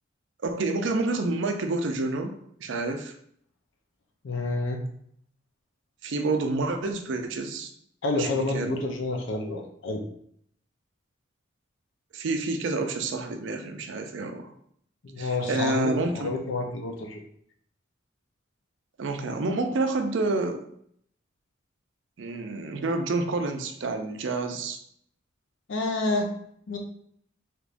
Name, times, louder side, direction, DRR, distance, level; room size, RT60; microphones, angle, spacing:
voice 1, 0.4-2.3 2.6-3.1 6.0-7.7 8.1-8.8 12.1-14.5 15.2-16.4 19.0-20.6 22.2-24.8, right 3 dB, 70° right, 6 dB, 0.4 m, -28 dB
voice 2, 4.2-4.8 8.0-10.0 15.0-17.2 25.7-26.3 26.7-26.8, left 2 dB, 75° left, 3 dB, 0.6 m, -29 dB
3.4 x 2.9 x 2.5 m, 0.66 s
head